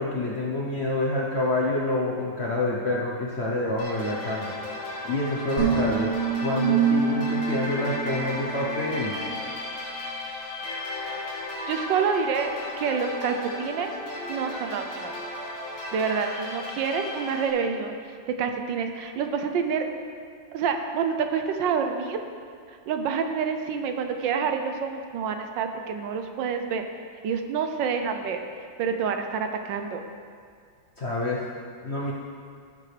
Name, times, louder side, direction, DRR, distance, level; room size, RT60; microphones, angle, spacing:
voice 1, 0.0-4.5 5.0-6.1 6.4-9.1 31.0-31.4 31.8-32.1, left 1 dB, 45° left, -4 dB, 0.9 m, -27 dB
sound 1, 3.8-17.5, left 1 dB, 80° left, 2.5 m, -35 dB
sound 2, 5.6-8.9, right 6 dB, 45° right, 3.0 m, -26 dB
voice 2, 11.7-13.9 14.3-15.1 15.9-17.9 18.4-19.9 20.5-22.2 22.9-26.8 27.2-28.4 28.8-30.0, right 6 dB, 75° right, 6 dB, 1.3 m, -27 dB
14.0 x 7.3 x 3.3 m, 2.2 s
omnidirectional pair, 2.1 m